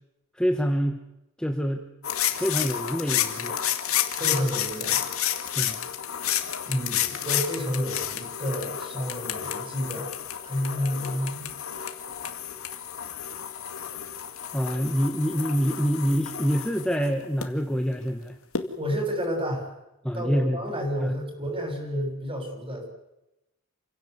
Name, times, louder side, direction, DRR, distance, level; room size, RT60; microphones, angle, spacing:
voice 1, 0.3-0.9 1.4-1.9 2.3-3.6 5.5-5.8 14.5-18.3 20.0-20.6 21.0-21.1, equal, 5° left, 3 dB, 1.3 m, -26 dB
sound 1, 2.0-17.5 18.5-18.7, left 10 dB, 90° left, 2.2 m, -31 dB
voice 2, 4.2-5.1 6.7-10.1 10.4-11.5 18.8-19.7 20.1-22.9, equal, 25° right, 3 dB, 7.1 m, -30 dB
29.0 x 16.5 x 8.2 m, 0.90 s
head